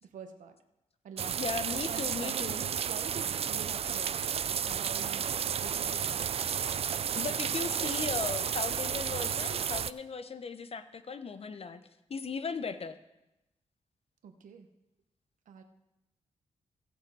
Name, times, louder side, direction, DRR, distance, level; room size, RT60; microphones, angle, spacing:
voice 1, 0.0-0.6 1.0-4.2 4.6-6.5 14.2-14.7 15.5-15.6, right 6 dB, 85° right, 7 dB, 1.0 m, -46 dB
sound 1, 1.2-9.9, right 8 dB, 50° right, 0.3 m, -32 dB
voice 2, 1.4-2.6 7.1-11.8 12.1-13.0, left 5 dB, 50° left, 11 dB, 0.8 m, -37 dB
16.5 x 6.2 x 4.7 m, 0.93 s
cardioid pair, 70°, 13 cm